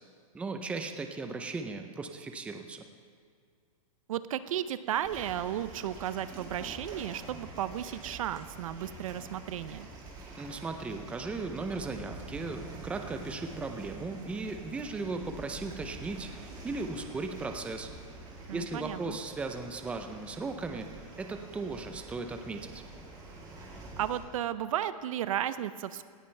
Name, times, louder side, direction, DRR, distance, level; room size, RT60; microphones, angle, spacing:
voice 1, 0.3-2.9 10.4-17.9 18.5-20.9 21.2-22.8, right 3 dB, 5° right, 6 dB, 0.6 m, -37 dB
voice 2, 4.1-9.9 18.5-19.2 24.0-26.0, right 11 dB, 65° right, 14 dB, 0.6 m, -34 dB
sound 1, 5.0-24.2, right 2 dB, 25° right, 2.5 m, -46 dB
18.0 x 14.0 x 3.3 m, 2.1 s
hypercardioid pair, 155°, 19 cm